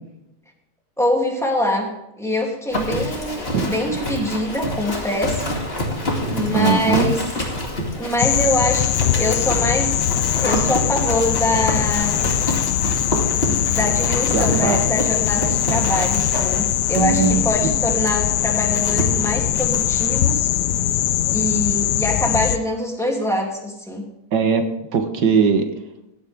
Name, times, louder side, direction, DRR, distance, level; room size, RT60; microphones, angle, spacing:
voice 1, 1.0-5.5 6.3-7.2 7.9-10.1 10.4-12.2 13.3-20.5 21.3-24.0, left 1 dB, ahead, -2 dB, 2.9 m, -24 dB
Livestock farm animals working animals, 2.7-20.3, left 1 dB, 35° left, 2.6 m, -27 dB
voice 2, 6.5-7.1 14.3-14.8 17.0-17.4 24.3-24.6 24.9-25.6, right 6 dB, 85° right, 6 dB, 2.0 m, -19 dB
sound 1, 8.2-22.6, left 11 dB, 75° left, 1.2 m, -21 dB
16.5 x 11.5 x 3.6 m, 0.88 s
omnidirectional pair, 1.8 m